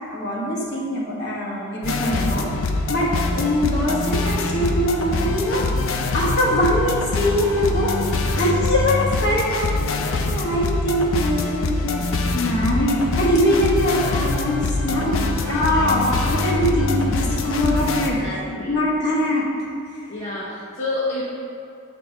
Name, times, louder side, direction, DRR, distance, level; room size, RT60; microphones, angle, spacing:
voice 1, 0.0-2.5 2.9-5.6 6.1-7.9 8.3-9.7 10.1-12.0 12.3-18.2 18.5-19.4 19.8-20.0, equal, 50° left, -5 dB, 1.3 m, -22 dB
sound 1, 1.8-18.1, left 3 dB, 70° left, 0.5 m, -24 dB
sound 2, 3.8-9.3, right 1 dB, 75° right, 0.9 m, -41 dB
voice 2, 14.9-15.7 18.2-18.8 20.1-21.3, left 2 dB, 30° left, -8 dB, 0.9 m, -30 dB
8.4 x 4.3 x 3.3 m, 2.5 s
head